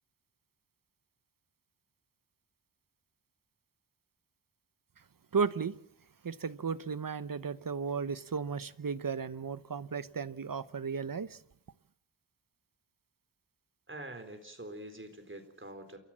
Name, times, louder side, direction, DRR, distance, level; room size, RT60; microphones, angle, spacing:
voice 1, 5.3-5.7 6.2-11.4, right 5 dB, 45° right, 0.9 m, -34 dB
voice 2, 13.9-16.0, right 1 dB, 25° right, 4.0 m, -45 dB
29.0 x 14.5 x 7.4 m
wide cardioid pair, 100°, 45 cm